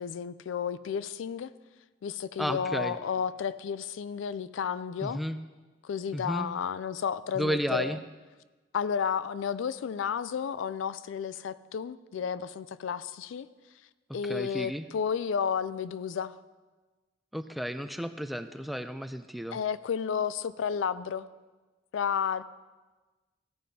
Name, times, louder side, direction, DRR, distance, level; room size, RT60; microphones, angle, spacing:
voice 1, 0.0-1.5 2.0-5.2 5.8-8.0 8.7-13.5 14.1-16.3 19.5-21.3 21.9-22.4, left 7 dB, 85° left, 16 dB, 0.4 m, -32 dB
voice 2, 2.4-3.0 5.0-5.4 6.1-6.5 7.4-8.0 14.2-14.9 17.3-19.6, equal, ahead, 9 dB, 0.3 m, -32 dB
15.0 x 9.2 x 2.8 m, 1.2 s
head